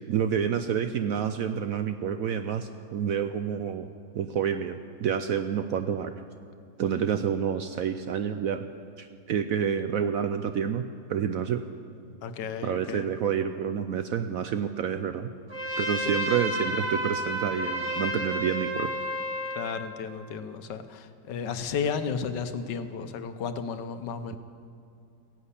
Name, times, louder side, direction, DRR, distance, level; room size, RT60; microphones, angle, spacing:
voice 1, 0.1-3.9 4.1-6.1 6.8-8.7 9.0-11.7 12.6-15.3 15.8-18.9, right 8 dB, 70° right, 9 dB, 0.8 m, -28 dB
voice 2, 12.2-13.1 19.5-24.4, left 6 dB, 75° left, 10 dB, 1.4 m, -33 dB
Trumpet, 15.5-19.8, equal, 15° right, 2.1 m, -31 dB
16.0 x 11.0 x 8.3 m, 2.5 s
omnidirectional pair, 1.9 m